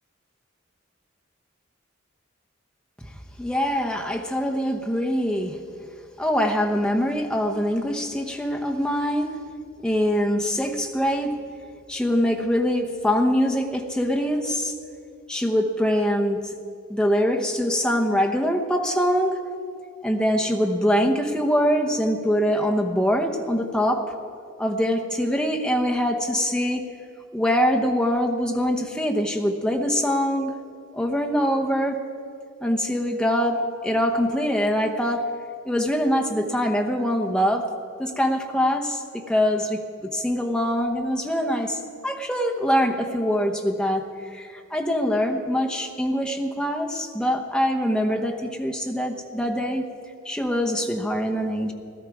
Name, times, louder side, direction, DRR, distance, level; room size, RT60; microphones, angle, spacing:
voice 1, 3.4-5.6 6.2-9.4 9.8-11.3 11.9-14.7 15.3-16.5 16.9-19.4 20.0-24.0 24.6-26.8 27.3-30.5 30.9-32.0 32.6-35.2 35.6-37.7 38.0-44.0 44.3-49.8 50.2-51.7, equal, 5° left, 1 dB, 0.9 m, -23 dB
17.0 x 13.0 x 4.8 m, 2.4 s
head